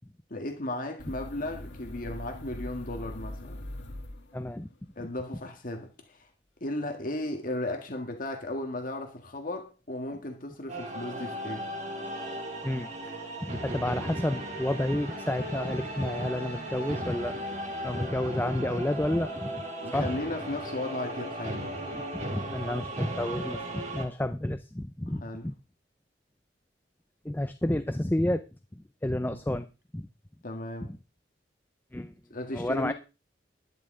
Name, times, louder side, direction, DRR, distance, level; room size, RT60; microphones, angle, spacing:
voice 1, 0.3-3.7 5.0-6.3 6.6-11.7 19.8-21.7 25.1-25.5 29.3-29.4 30.4-31.0 32.3-32.9, left 1 dB, 50° left, 1.7 m, -35 dB
Oil burner shutdown, 1.0-4.7, left 1 dB, 80° left, 1.5 m, -41 dB
voice 2, 4.3-4.7 12.6-13.1 13.4-17.4 17.8-19.6 19.9-20.1 21.9-25.5 27.2-28.4 29.0-29.7 29.9-30.1 30.8-31.0 31.9-32.1 32.5-32.9, left 1 dB, 10° left, 0.5 m, -30 dB
sound 1, 10.7-24.0, right 1 dB, 40° right, 3.2 m, -36 dB
12.0 x 11.5 x 3.8 m
head